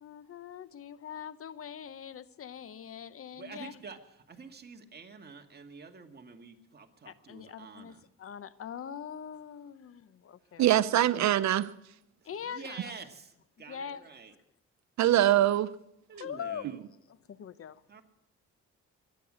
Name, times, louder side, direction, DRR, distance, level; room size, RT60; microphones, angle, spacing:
voice 1, 0.0-3.7 7.1-10.6 12.2-12.8 13.7-14.0 16.2-16.7 17.3-17.8, left 8 dB, 50° left, 0.8 m, -42 dB
voice 2, 3.3-8.1 12.2-14.3 16.1-16.9 17.9-18.0, right 5 dB, 35° right, 2.0 m, -48 dB
voice 3, 10.6-11.7 15.0-15.7, right 12 dB, 65° right, 0.8 m, -23 dB
23.0 x 9.2 x 6.5 m
cardioid pair, 90°, 30 cm